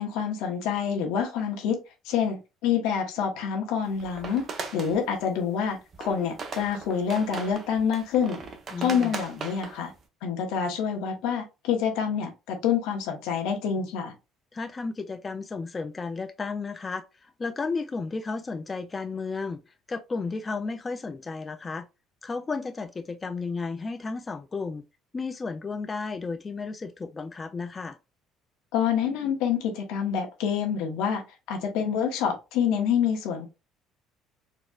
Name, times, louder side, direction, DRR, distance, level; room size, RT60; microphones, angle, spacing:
voice 1, 0.0-1.8 2.0-4.4 4.7-8.4 8.8-9.9 10.2-14.1 28.7-31.2 31.5-33.5, left 7 dB, 80° left, 0.9 m, -27 dB
sound 1, 3.8-5.0 5.6-5.7 5.9-10.0, right 4 dB, 40° right, 0.7 m, -38 dB
voice 2, 8.7-9.1 14.5-21.9 22.2-24.8 25.1-28.0, left 4 dB, 25° left, 0.3 m, -33 dB
4.0 x 2.1 x 2.3 m
cardioid pair, 105°, 0 cm